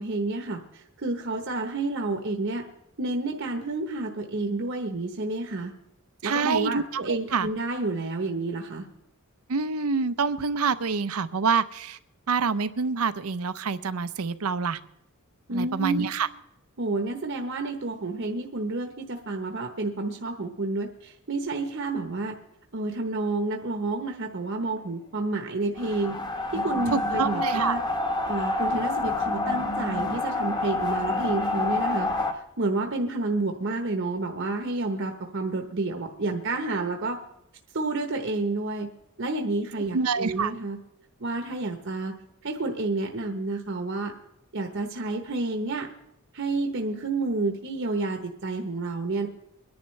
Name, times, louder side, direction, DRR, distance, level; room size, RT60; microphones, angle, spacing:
voice 1, 0.0-2.7 3.0-5.7 6.2-8.8 15.5-16.1 16.8-22.4 22.7-26.2 26.5-27.8 28.3-32.1 32.3-37.2 37.7-38.9 39.2-40.8 41.2-42.1 42.4-44.1 44.5-45.9 46.3-49.3, right 2 dB, 55° right, 3 dB, 1.0 m, -30 dB
voice 2, 6.2-7.5 9.5-12.0 12.3-14.8 15.5-16.3 26.9-27.8 39.9-40.5, right 5 dB, 80° right, 14 dB, 0.7 m, -27 dB
sound 1, 25.8-32.3, left 2 dB, 20° left, 1.2 m, -28 dB
24.0 x 10.5 x 3.2 m, 0.82 s
head